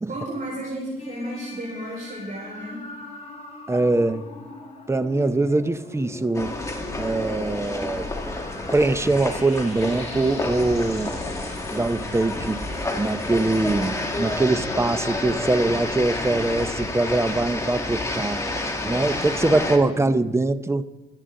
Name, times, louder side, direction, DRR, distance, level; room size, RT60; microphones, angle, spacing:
voice 1, 0.1-2.9, right 1 dB, 45° right, 4.7 m, -33 dB
sound 1, 1.0-14.7, left 2 dB, 35° left, 4.4 m, -41 dB
voice 2, 3.7-4.2 4.9-6.5 7.0-8.1 8.7-11.1 11.7-12.6 12.9-18.4 18.8-20.9, right 2 dB, 15° right, 0.7 m, -23 dB
sound 2, 6.3-19.8, left 2 dB, 15° left, 2.1 m, -29 dB
24.0 x 9.2 x 3.8 m
cardioid pair, 90°, 20 cm